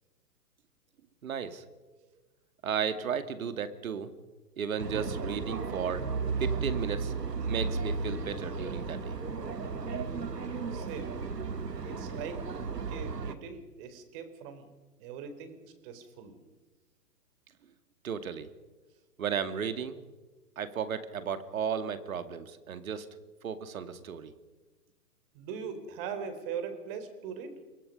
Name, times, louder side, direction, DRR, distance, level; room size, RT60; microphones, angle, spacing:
voice 1, 1.2-1.6 2.6-4.1 4.6-6.0 6.4-7.1 7.4-9.2 18.0-18.5 19.2-20.0 20.6-23.1 23.4-24.3, right 7 dB, 60° right, 11 dB, 2.4 m, -34 dB
sound 1, 4.8-13.4, right 4 dB, 85° right, 2.0 m, -34 dB
voice 2, 10.7-11.1 11.8-12.4 12.9-14.7 15.0-16.4 25.3-27.5, right 7 dB, 35° right, 9 dB, 4.1 m, -41 dB
27.0 x 23.0 x 5.4 m, 1.2 s
hypercardioid pair, 130°, 47 cm